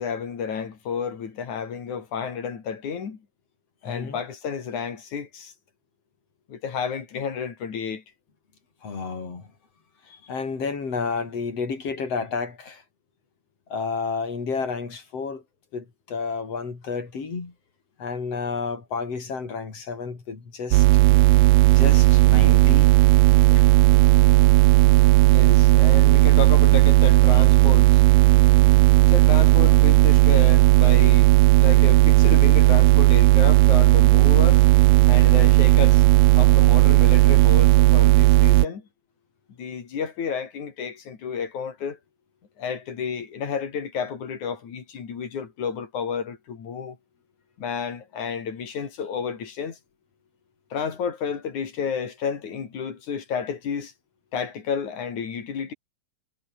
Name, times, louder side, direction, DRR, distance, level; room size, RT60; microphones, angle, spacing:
voice 1, 0.0-3.2 3.8-5.5 6.5-8.0 10.1-10.2 25.3-28.0 29.1-34.7 35.1-36.0 36.4-38.9 39.6-42.0 42.6-47.0 47.6-49.8 50.7-53.9 54.3-55.7, left 6 dB, 80° left, 4.6 m, -31 dB
voice 2, 3.8-4.2 8.8-9.5 10.3-12.8 13.7-15.4 15.7-17.5 18.0-20.9 21.7-22.9 23.6-23.7, left 5 dB, 55° left, 5.5 m, -31 dB
sound 1, 20.7-38.7, right 20 dB, 90° right, 2.0 m, -15 dB
omnidirectional pair, 3.3 m